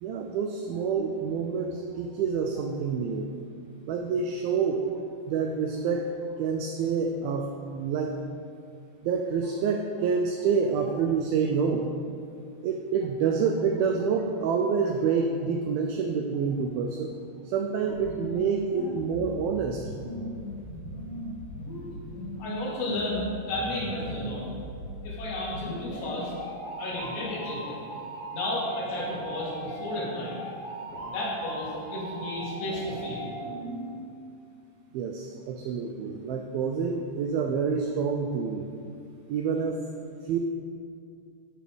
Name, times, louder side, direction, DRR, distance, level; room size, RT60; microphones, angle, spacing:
voice 1, 0.0-3.3 3.9-4.9 5.3-6.1 6.4-8.1 9.0-11.9 12.6-17.1 17.4-19.8 34.9-38.7 39.3-39.8 40.2-40.4, right 5 dB, 90° right, 3 dB, 2.1 m, -27 dB
sound 1, 17.9-33.9, right 1 dB, 45° left, 2.6 m, -38 dB
voice 2, 22.4-24.4 25.0-26.3 26.8-27.8 28.3-30.4 31.1-33.3, left 1 dB, 80° left, -6 dB, 4.4 m, -33 dB
13.0 x 5.2 x 5.0 m, 2.4 s
omnidirectional pair, 4.8 m